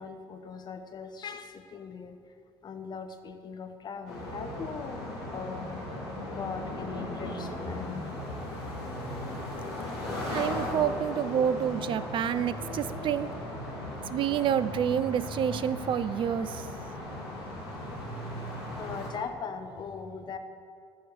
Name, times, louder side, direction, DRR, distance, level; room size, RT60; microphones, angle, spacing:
voice 1, 0.0-2.2 2.6-5.0 5.3-5.9 6.3-8.1 16.9-17.4 18.8-20.4, left 5 dB, 30° left, 7 dB, 0.8 m, -40 dB
sound 1, 4.1-19.1, left 1 dB, 70° left, 2.5 m, -37 dB
voice 2, 10.3-13.3 14.1-16.7, right 9 dB, 40° right, 15 dB, 0.4 m, -28 dB
13.5 x 4.6 x 6.5 m, 2.2 s
figure-of-eight pair, 55°, 14 cm